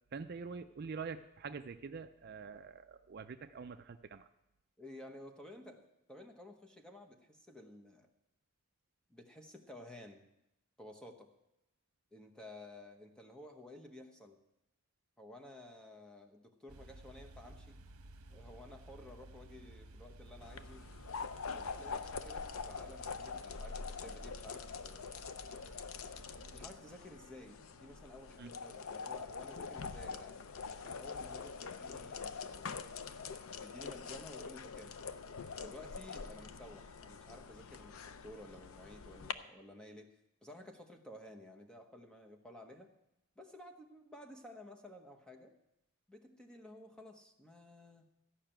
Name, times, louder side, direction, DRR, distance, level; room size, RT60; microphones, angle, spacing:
voice 1, 0.1-4.2 28.4-28.5, right 5 dB, 45° right, 8 dB, 0.4 m, -45 dB
voice 2, 4.8-8.1 9.1-10.3 10.8-11.3 12.1-14.4 15.2-17.8 18.3-20.9 21.4-25.1 26.5-32.8 33.5-35.0 35.6-40.1 40.4-42.9 43.4-45.5 46.1-48.0, left 1 dB, 5° left, 3 dB, 1.0 m, -54 dB
sound 1, 16.7-26.8, right 2 dB, 75° right, 1.0 m, -55 dB
sound 2, 20.4-39.3, left 5 dB, 70° left, 0.6 m, -45 dB
14.0 x 5.8 x 8.9 m, 0.89 s
head